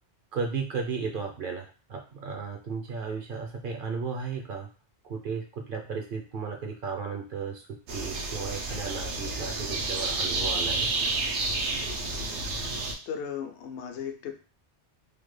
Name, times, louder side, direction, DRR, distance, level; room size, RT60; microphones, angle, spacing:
voice 1, 0.3-4.7 5.0-10.9, right 5 dB, 60° right, 2 dB, 0.7 m, -34 dB
sound 1, 7.9-12.9, right 3 dB, 85° right, 1.0 m, -30 dB
voice 2, 13.1-14.3, left 7 dB, 80° left, 5 dB, 0.9 m, -35 dB
3.3 x 2.1 x 3.2 m, 0.36 s
omnidirectional pair, 1.2 m